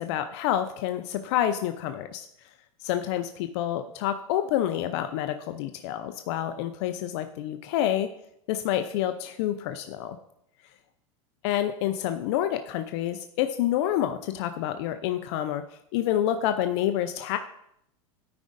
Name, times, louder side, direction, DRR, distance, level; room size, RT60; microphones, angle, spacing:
voice 1, 0.0-2.3 2.8-8.1 8.5-10.2 11.4-15.6 15.9-17.4, left 11 dB, 60° left, 8 dB, 0.6 m, -28 dB
13.0 x 5.1 x 2.6 m, 0.76 s
supercardioid pair, 115°, 16 cm